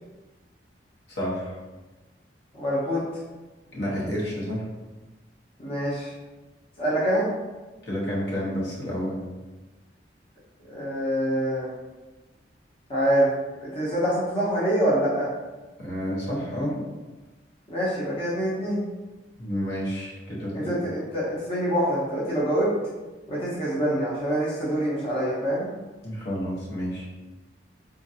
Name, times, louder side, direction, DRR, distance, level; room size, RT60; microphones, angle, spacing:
voice 1, 1.1-1.6 3.7-4.6 7.8-9.2 15.8-16.8 19.4-20.7 26.0-27.0, equal, 65° left, -6 dB, 1.0 m, -30 dB
voice 2, 2.5-3.0 5.6-6.1 6.8-7.3 10.7-11.7 12.9-13.3 13.6-15.3 17.7-18.8 20.5-22.7 23.3-25.7, equal, 35° left, -8 dB, 0.8 m, -25 dB
3.7 x 2.5 x 2.7 m, 1.2 s
head